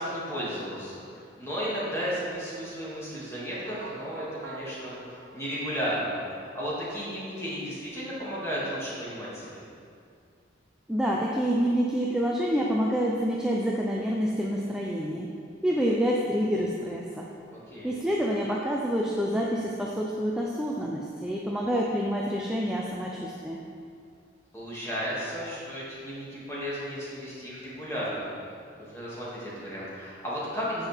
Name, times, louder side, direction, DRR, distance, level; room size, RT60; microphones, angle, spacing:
voice 1, 0.0-5.0 5.3-9.6 17.5-17.9 24.5-28.3 28.8-30.9, equal, 15° left, -8 dB, 2.3 m, -34 dB
sound 1, 3.5-7.7, right 3 dB, 85° right, 0.7 m, -46 dB
voice 2, 10.9-15.3 15.6-17.3 17.8-23.6, equal, 5° right, -3 dB, 0.5 m, -27 dB
9.1 x 7.4 x 3.6 m, 2.3 s
head